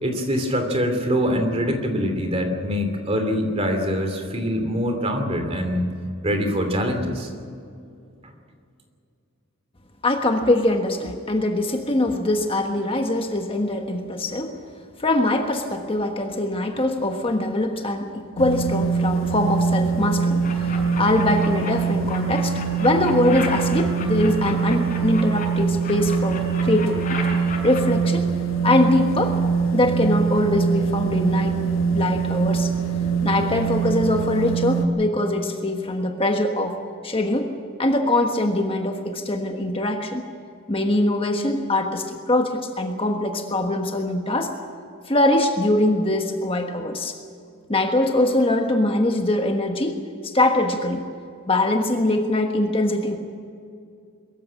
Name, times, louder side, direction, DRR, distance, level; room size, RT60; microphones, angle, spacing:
voice 1, 0.0-5.9 6.2-7.3, equal, 30° right, 5 dB, 2.9 m, -24 dB
voice 2, 10.0-14.5 15.0-27.2 27.6-28.3 28.6-29.4 29.7-31.6 31.9-32.7 33.2-36.8 37.0-37.5 37.8-40.2 40.7-44.5 45.1-47.1 47.7-51.0 51.5-53.2, left 1 dB, 25° left, 4 dB, 1.4 m, -22 dB
sound 1, 18.4-34.9, right 5 dB, 65° left, 1.6 m, -23 dB
sound 2, 20.4-21.7 22.1-25.5 25.8-27.8, left 4 dB, 40° left, 6.0 m, -34 dB
23.0 x 14.5 x 8.7 m, 2.4 s
head